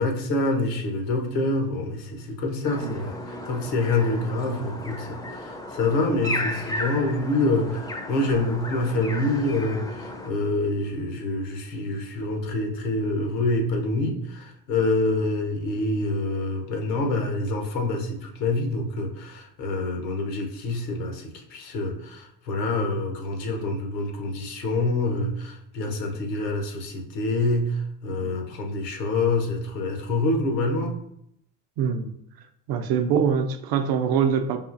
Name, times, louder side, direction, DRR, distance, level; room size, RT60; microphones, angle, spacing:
voice 1, 0.0-30.9, left 2 dB, 90° left, 2 dB, 0.9 m, -26 dB
sound 1, 2.6-10.3, left 1 dB, 10° left, 0.4 m, -34 dB
voice 2, 28.1-28.4 31.8-32.1 32.7-34.6, right 7 dB, 50° right, 8 dB, 0.5 m, -24 dB
5.0 x 2.5 x 2.5 m, 0.76 s
hypercardioid pair, 70°, 47 cm